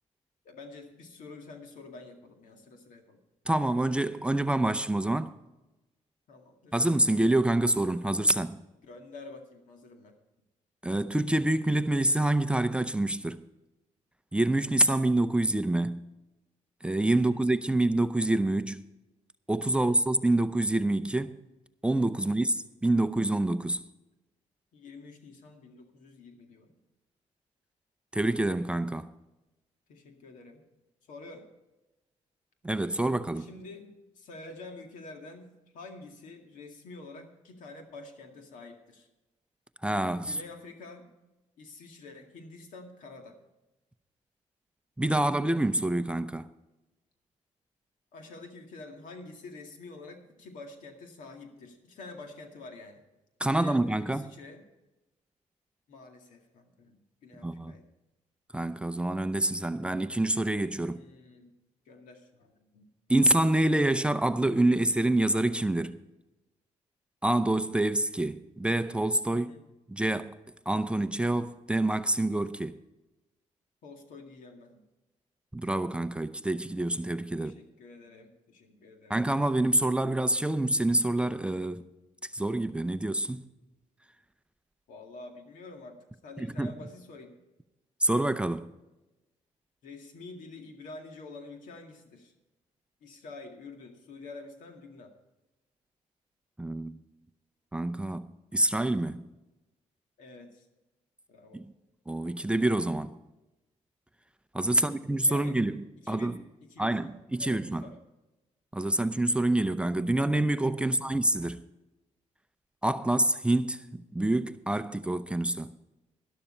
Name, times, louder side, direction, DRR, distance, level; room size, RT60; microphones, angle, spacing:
voice 1, 0.4-3.2 6.3-6.7 8.8-10.1 17.1-17.5 19.7-20.0 22.2-22.4 24.7-26.8 29.9-30.6 31.1-31.5 33.4-39.1 40.3-41.1 41.6-43.4 48.1-53.0 53.5-54.6 55.9-57.9 60.8-61.5 61.9-62.9 69.3-69.6 73.8-74.8 77.4-79.2 84.9-87.3 89.8-92.3 93.0-95.1 100.2-100.7 101.3-101.6 104.7-105.6 106.0-106.4 106.7-108.0 110.8-111.3, left 3 dB, 90° left, 2.1 m, -48 dB
voice 2, 3.5-5.4 6.7-8.6 10.8-13.4 14.3-16.1 16.8-18.8 19.5-21.4 21.8-23.8 28.1-29.1 32.6-33.5 39.8-40.4 45.0-46.5 53.4-54.3 57.4-57.7 58.5-61.0 63.1-66.0 67.2-69.5 69.9-70.4 70.7-72.8 75.5-77.5 79.1-81.8 82.2-83.5 86.4-86.7 88.0-88.7 96.6-97.0 97.7-99.2 101.5-101.7 102.1-103.2 104.5-106.4 106.8-107.8 108.7-111.6 112.8-115.7, right 1 dB, 10° right, 0.5 m, -27 dB
12.5 x 12.0 x 4.4 m
cardioid pair, 100°, 13 cm